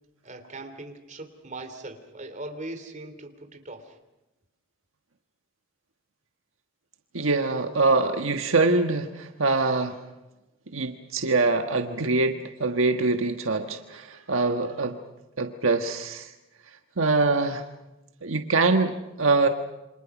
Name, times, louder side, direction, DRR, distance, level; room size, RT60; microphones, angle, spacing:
voice 1, 0.2-4.0, right 2 dB, 35° right, 6 dB, 3.1 m, -40 dB
voice 2, 7.1-10.0 10.7-15.0 15.4-16.3 17.0-17.6 18.2-19.5, right 3 dB, 75° right, 6 dB, 1.4 m, -24 dB
28.5 x 26.0 x 6.1 m, 1.0 s
head